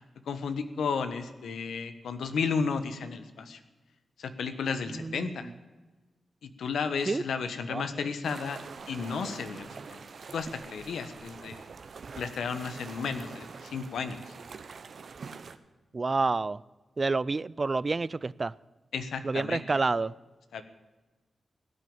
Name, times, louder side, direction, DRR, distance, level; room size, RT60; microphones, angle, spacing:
voice 1, 0.3-3.6 4.2-5.5 6.4-8.6 8.9-10.0 10.3-11.6 12.2-14.3 18.9-19.6 20.5-20.6, left 5 dB, 90° left, 1.3 m, -33 dB
voice 2, 4.9-5.5 7.1-7.2 7.7-7.8 15.9-16.6 17.0-18.5 19.2-20.1, right 3 dB, 40° right, 0.5 m, -29 dB
sound 1, 8.2-15.6, right 5 dB, 65° right, 1.1 m, -45 dB
16.5 x 9.6 x 8.8 m
cardioid pair, 60°, 0 cm